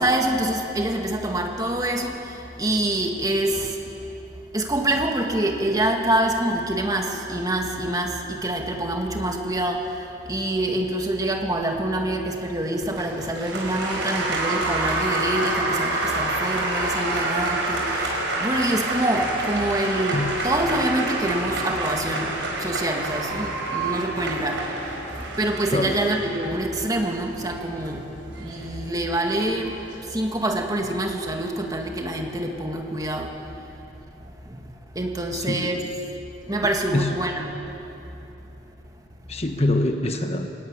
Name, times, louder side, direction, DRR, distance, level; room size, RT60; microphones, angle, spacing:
voice 1, 0.0-2.2 2.6-3.7 4.5-9.8 10.3-18.1 18.4-22.3 22.6-24.7 25.4-28.1 28.3-29.8 30.1-33.3 34.5-34.6 35.0-35.8 36.5-37.5, right 1 dB, 20° right, 2 dB, 1.9 m, -25 dB
Applause, 12.8-30.0, right 2 dB, 75° right, 5.1 m, -28 dB
voice 2, 35.3-35.9 36.9-37.1 39.3-40.5, left 2 dB, 35° left, 5 dB, 1.2 m, -24 dB
22.5 x 17.0 x 9.8 m, 3.0 s
head